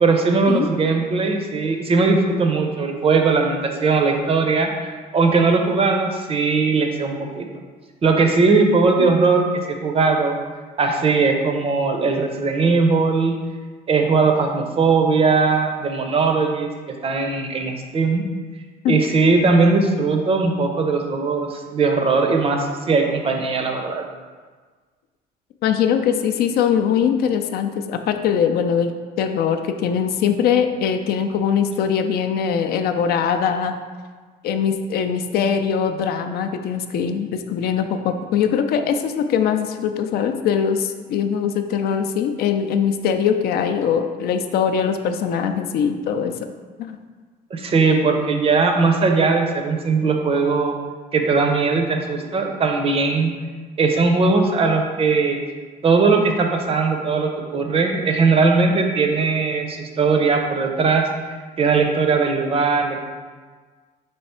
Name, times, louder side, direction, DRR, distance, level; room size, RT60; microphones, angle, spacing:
voice 1, 0.0-7.5 8.0-10.4 10.8-13.3 13.9-18.2 18.9-24.0 47.5-50.7 51.1-53.3 53.8-55.4 55.8-61.1 61.6-63.1, right 4 dB, 35° right, 3 dB, 0.5 m, -19 dB
voice 2, 25.6-33.7 34.4-46.3 46.8-47.0, left 7 dB, 65° left, 7 dB, 0.4 m, -21 dB
3.4 x 3.1 x 4.2 m, 1.5 s
cardioid pair, 110°, 17 cm